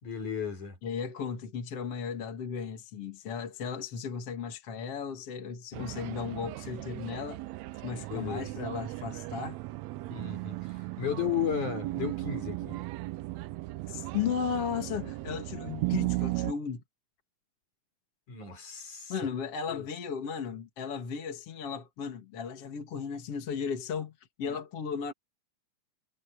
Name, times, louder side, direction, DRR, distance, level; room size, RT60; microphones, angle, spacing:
voice 1, 0.0-0.8 5.8-5.9 8.1-8.5 10.1-12.8 18.3-19.3 19.7-19.9, left 9 dB, 65° left, 6.2 m, -34 dB
voice 2, 0.8-7.4 7.8-9.6 13.9-16.8 19.1-24.1 24.4-25.1, left 6 dB, 50° left, 2.9 m, -35 dB
sound 1, 5.7-16.5, right 19 dB, 90° right, 1.5 m, -36 dB
omnidirectional pair, 3.7 m